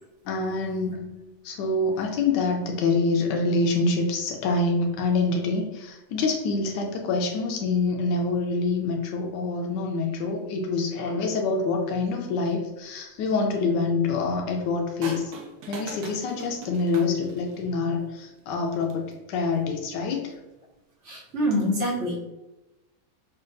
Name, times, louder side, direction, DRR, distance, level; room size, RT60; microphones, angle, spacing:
voice 1, 0.2-1.1 1.4-15.3 15.7-20.3, left 3 dB, 85° left, 1 dB, 1.2 m, -26 dB
sound 1, 15.0-17.7 18.7-19.1, right 3 dB, 70° right, 1.1 m, -41 dB
voice 2, 21.0-22.2, equal, 50° right, -4 dB, 1.1 m, -25 dB
5.3 x 2.3 x 2.5 m, 1.0 s
omnidirectional pair, 1.8 m